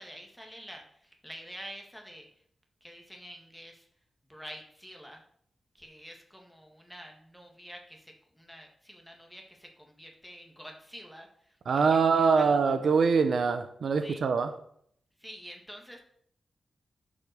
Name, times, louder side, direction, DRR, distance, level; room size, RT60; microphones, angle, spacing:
voice 1, 0.0-2.3 2.8-3.9 4.3-5.2 5.7-12.6 14.0-14.3 15.2-16.0, equal, 5° left, 2 dB, 1.5 m, -48 dB
voice 2, 11.7-14.5, right 5 dB, 65° right, 8 dB, 0.9 m, -24 dB
10.5 x 5.3 x 6.6 m, 0.66 s
wide cardioid pair, 180°, 0 cm